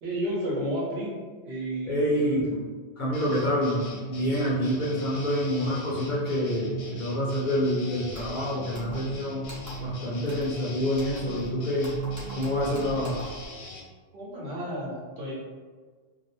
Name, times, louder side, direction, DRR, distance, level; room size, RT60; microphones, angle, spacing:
voice 1, 0.0-2.3 14.1-15.3, equal, 70° right, -5 dB, 1.0 m, -32 dB
voice 2, 1.9-2.6 3.0-9.5 9.8-11.9 12.4-13.2, left 1 dB, 55° left, -5 dB, 0.6 m, -27 dB
sound 1, 3.1-13.8, right 3 dB, 80° left, 0.9 m, -38 dB
sound 2, 8.1-8.4 8.7-9.2 9.4-9.9 10.2-10.6 10.9-11.5 11.8-13.5, equal, 25° right, 0.4 m, -43 dB
2.4 x 2.1 x 2.9 m, 1.5 s
omnidirectional pair, 1.1 m